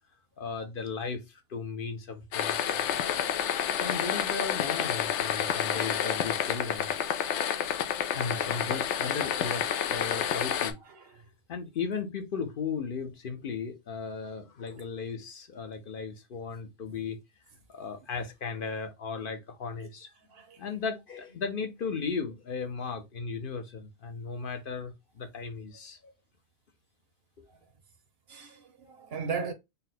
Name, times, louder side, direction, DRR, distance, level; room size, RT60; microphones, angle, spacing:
voice 1, 0.4-3.4 3.7-6.9 8.1-9.6 9.9-10.8 11.5-17.2 17.7-20.1 20.6-26.1, left 5 dB, 60° left, 0.7 m, -36 dB
sound 1, 2.3-10.7, left 9 dB, 85° left, 0.9 m, -29 dB
voice 2, 20.3-20.6 28.3-29.5, right 5 dB, 65° right, 1.0 m, -36 dB
4.1 x 2.1 x 3.9 m
omnidirectional pair, 1.2 m